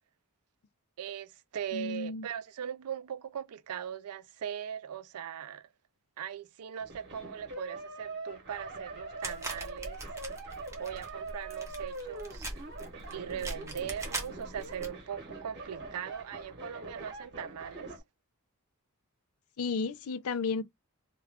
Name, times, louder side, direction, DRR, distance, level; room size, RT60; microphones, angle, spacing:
voice 1, 1.0-5.7 6.2-10.0 10.8-12.5 13.1-17.9, right 8 dB, 80° right, 0.4 m, -40 dB
voice 2, 1.7-2.3 19.6-20.6, left 4 dB, 70° left, 0.4 m, -33 dB
sound 1, 6.8-18.0, right 3 dB, 50° right, 0.9 m, -43 dB
sound 2, 9.2-14.9, right 2 dB, 15° right, 0.7 m, -41 dB
2.4 x 2.2 x 3.4 m
head